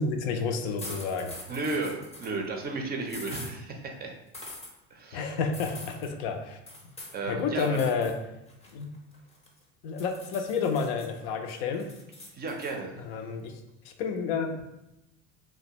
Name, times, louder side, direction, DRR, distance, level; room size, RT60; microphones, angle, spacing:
voice 1, 0.0-1.3 5.1-6.6 7.3-8.1 8.7-8.9 9.8-11.9 13.1-13.6 13.8-14.6, left 5 dB, 70° left, 5 dB, 0.5 m, -30 dB
sound 1, 0.8-2.4 3.1-3.5 4.3-4.7 5.5-6.1 6.7-7.2 7.6-8.2 8.5-9.6 10.0-11.1 11.5-12.7, left 2 dB, 20° left, 0.6 m, -44 dB
voice 2, 1.5-4.2 4.9-5.4 7.1-7.8 12.3-12.9, right 3 dB, 25° right, 2 dB, 0.4 m, -34 dB
2.3 x 2.1 x 2.8 m, 0.90 s
hypercardioid pair, 85°, 35 cm